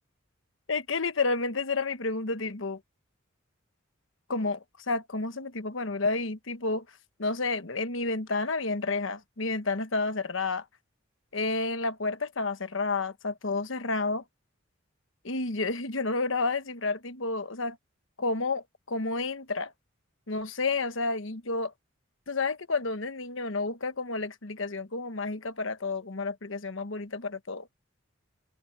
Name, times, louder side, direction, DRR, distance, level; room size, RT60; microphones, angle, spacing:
voice 1, 0.7-2.8 4.3-6.8 7.2-10.6 11.3-14.2 15.2-17.8 18.2-19.7 20.3-21.7 22.3-27.7, left 3 dB, 70° left, 1.2 m, -30 dB
open air
head